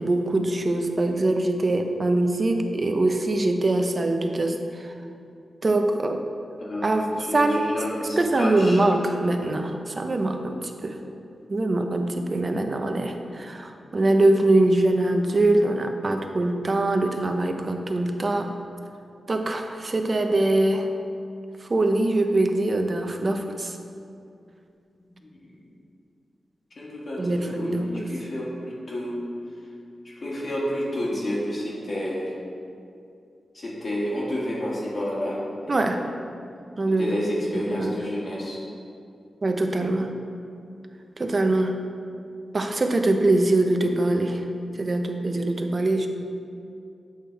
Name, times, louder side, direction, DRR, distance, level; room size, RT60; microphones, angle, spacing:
voice 1, 0.0-4.9 5.6-6.2 6.8-7.0 7.3-7.7 8.2-10.6 10.8-11.0 11.5-18.5 19.3-20.9 21.7-23.8 27.2-28.0 35.7-36.0 36.8-37.2 37.5-37.9 39.4-40.1 41.2-41.8 42.5-44.4 44.8-46.1, right 2 dB, 35° right, 5 dB, 0.5 m, -23 dB
voice 2, 6.6-8.8 25.0-25.5 26.8-29.3 30.0-32.3 33.5-36.0 37.0-38.6, equal, 50° left, -6 dB, 1.4 m, -30 dB
8.1 x 3.3 x 4.4 m, 2.5 s
wide cardioid pair, 115°, 0 cm